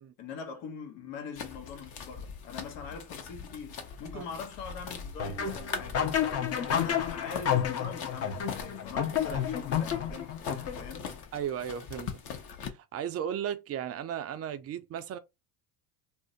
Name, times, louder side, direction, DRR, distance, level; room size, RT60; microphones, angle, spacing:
voice 1, 0.2-6.1 6.5-11.1, left 5 dB, 75° left, 1.1 m, -43 dB
sound 1, 1.4-12.7, left 6 dB, 50° left, 0.9 m, -42 dB
sound 2, 5.2-11.1, left 8 dB, 30° left, 0.6 m, -30 dB
voice 2, 11.3-12.2 12.7-15.2, right 9 dB, 30° right, 0.4 m, -35 dB
2.5 x 2.1 x 3.8 m
supercardioid pair, 95°, 49 cm